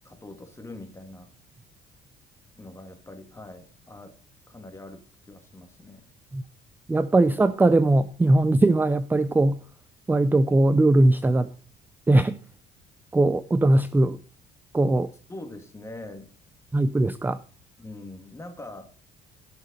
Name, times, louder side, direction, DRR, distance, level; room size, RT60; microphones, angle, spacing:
voice 1, 0.0-1.3 2.6-4.1 4.5-6.0 15.3-16.3 17.8-18.9, left 2 dB, 15° left, 6 dB, 2.4 m, -43 dB
voice 2, 6.9-9.6 10.1-11.5 12.1-12.4 13.1-14.2 14.7-15.1 16.7-17.4, right 2 dB, 10° right, 14 dB, 0.5 m, -20 dB
17.5 x 6.1 x 4.1 m, 0.40 s
cardioid pair, 110°, 17 cm